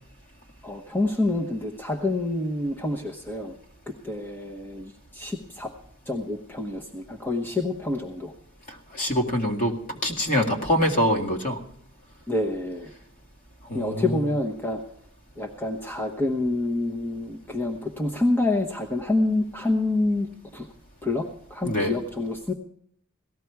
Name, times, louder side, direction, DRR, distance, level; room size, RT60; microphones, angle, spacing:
voice 1, 0.6-3.6 4.0-5.7 6.1-8.3 10.4-10.7 12.3-12.9 13.7-14.8 15.4-20.7 21.0-22.5, left 2 dB, 10° left, 1 dB, 1.0 m, -27 dB
voice 2, 8.9-9.7 10.0-11.6 13.7-14.2 21.6-21.9, equal, 40° left, 2 dB, 2.1 m, -24 dB
18.0 x 14.0 x 4.7 m, 0.67 s
head